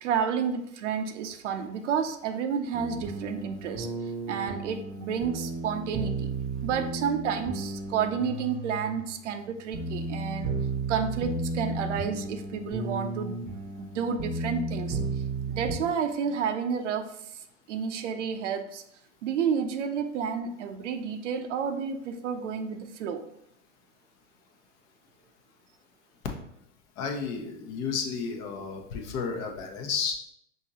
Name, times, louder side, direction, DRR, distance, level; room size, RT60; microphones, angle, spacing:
voice 1, 0.0-3.9 4.3-6.3 6.6-10.5 10.9-13.5 13.8-15.0 15.5-17.1 17.7-18.8 19.2-23.2, right 7 dB, 70° right, 8 dB, 0.6 m, -30 dB
sound 1, 2.7-15.8, right 3 dB, 25° right, 0.8 m, -34 dB
voice 2, 27.0-30.1, left 5 dB, 45° left, 3 dB, 0.9 m, -32 dB
5.5 x 2.7 x 2.8 m, 0.74 s
hypercardioid pair, 90°, 38 cm